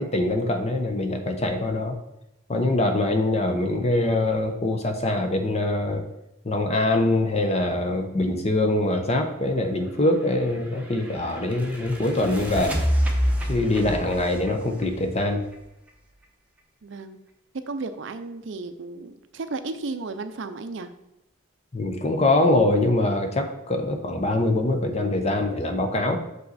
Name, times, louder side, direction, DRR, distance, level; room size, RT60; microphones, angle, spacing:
voice 1, 0.0-2.0 2.5-6.0 6.4-12.8 13.5-15.5 21.7-26.2, left 2 dB, 30° left, 5 dB, 0.8 m, -23 dB
sound 1, 10.1-15.9, equal, 5° right, 0.9 m, -29 dB
voice 2, 16.8-17.2 17.7-20.9, right 3 dB, 60° right, 10 dB, 0.5 m, -34 dB
6.3 x 5.5 x 4.1 m, 0.90 s
head